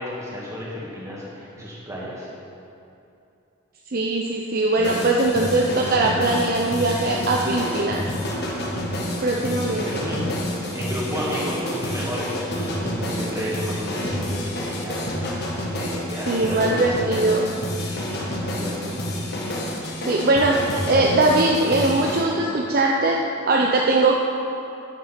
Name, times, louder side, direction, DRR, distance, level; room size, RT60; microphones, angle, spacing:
voice 1, 0.0-2.3 9.3-10.3 10.7-15.1 15.7-16.8 18.4-19.0, equal, 15° right, -6 dB, 2.2 m, -32 dB
voice 2, 3.9-8.1 9.2-10.1 16.3-17.5 20.1-24.1, right 2 dB, 45° right, -1 dB, 0.6 m, -21 dB
sound 1, 4.8-22.2, left 1 dB, 50° left, 1.5 m, -28 dB
10.5 x 7.2 x 5.8 m, 2.7 s
head